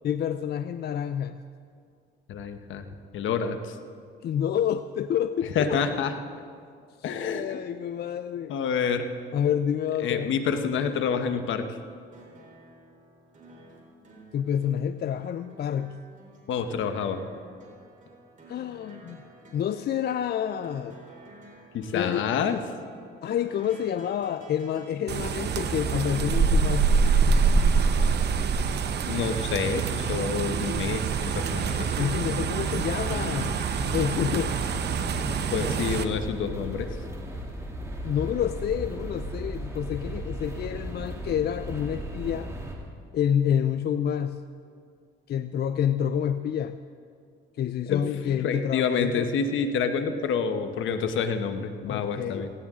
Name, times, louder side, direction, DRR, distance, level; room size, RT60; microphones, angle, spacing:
voice 1, 0.0-1.4 4.2-5.8 7.0-8.5 9.3-10.3 14.3-16.0 18.5-19.2 19.5-21.0 21.9-22.3 23.2-26.9 32.0-33.5 33.9-34.5 38.0-42.5 43.1-44.4 45.3-46.8 47.6-49.3 51.9-52.5, left 9 dB, 55° left, 11 dB, 0.5 m, -28 dB
voice 2, 2.3-2.9 3.1-3.8 5.5-6.1 7.0-7.6 8.5-9.1 10.0-11.7 16.5-17.2 21.7-22.6 29.1-31.9 35.5-36.9 47.9-48.0 48.4-52.5, left 6 dB, 75° left, 8 dB, 1.1 m, -28 dB
sound 1, 12.1-27.0 28.3-28.4, right 1 dB, 40° right, 3.9 m, -51 dB
sound 2, 25.1-36.0, right 5 dB, 55° right, 0.9 m, -25 dB
Chancery Lane - Shortest escalator on network (up), 33.0-42.7, equal, 15° right, 2.6 m, -36 dB
18.5 x 16.5 x 3.7 m, 2.3 s
cardioid pair, 90°, 20 cm